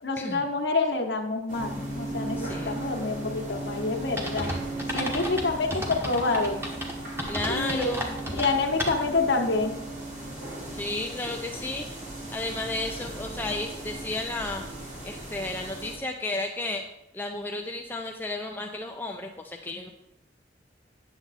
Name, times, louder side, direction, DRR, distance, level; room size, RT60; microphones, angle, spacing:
voice 1, 0.0-4.5 4.9-6.6 7.5-7.9 8.3-9.7, left 3 dB, 80° left, 2 dB, 1.0 m, -27 dB
sound 1, 1.5-15.9, right 1 dB, 45° right, 2.7 m, -37 dB
voice 2, 2.4-2.8 7.3-8.2 10.7-11.9 12.3-14.7 15.0-16.9 17.1-19.9, left 2 dB, 10° left, 2 dB, 0.5 m, -33 dB
sound 2, 4.2-9.2, equal, 15° right, 1.3 m, -33 dB
9.5 x 7.1 x 4.1 m, 0.87 s
head